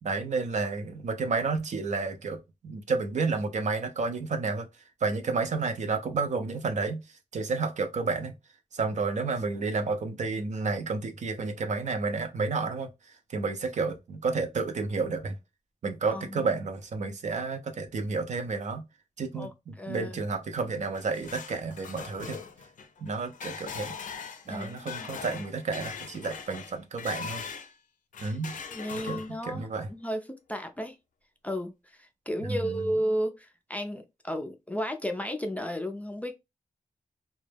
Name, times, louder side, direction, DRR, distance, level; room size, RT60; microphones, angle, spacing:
voice 1, 0.0-4.7 5.0-7.0 7.3-8.3 8.7-12.9 13.3-15.4 15.8-18.8 19.2-22.4 23.0-24.0 24.5-27.4 28.2-28.6 28.9-29.9 32.4-32.7, right 4 dB, 60° right, 0.5 m, -31 dB
voice 2, 16.1-16.5 17.1-17.2 19.3-19.5 19.8-20.2 24.5-24.9 25.2-25.4 28.2-28.4 28.7-31.0 31.4-36.3, equal, 10° left, 0.3 m, -33 dB
sound 1, 20.7-27.7 28.1-29.5, left 6 dB, 70° left, 0.4 m, -41 dB
2.2 x 2.0 x 3.2 m
wide cardioid pair, 115°, 14 cm